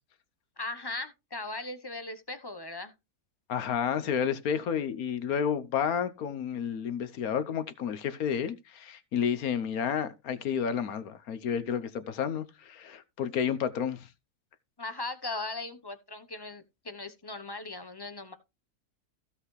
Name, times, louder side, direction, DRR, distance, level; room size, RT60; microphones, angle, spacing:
voice 1, 0.6-2.9 14.8-18.3, left 2 dB, 20° left, 0.7 m, -38 dB
voice 2, 3.5-14.1, left 8 dB, 65° left, 1.3 m, -31 dB
15.5 x 5.7 x 3.2 m
omnidirectional pair, 1.7 m